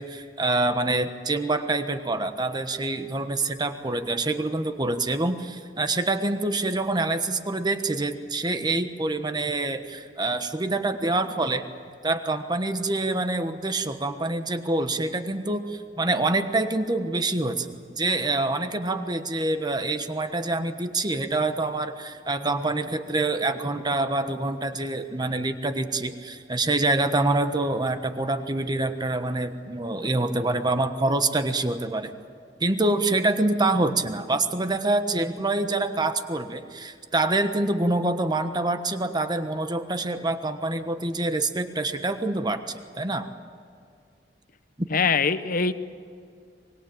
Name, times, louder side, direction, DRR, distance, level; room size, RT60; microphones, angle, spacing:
voice 1, 0.0-11.6 12.0-32.1 32.6-42.6 43.0-43.3, right 2 dB, 25° right, 9 dB, 1.2 m, -26 dB
voice 2, 44.9-45.7, left 5 dB, 50° left, 12 dB, 0.9 m, -22 dB
24.5 x 21.5 x 8.8 m, 2.3 s
head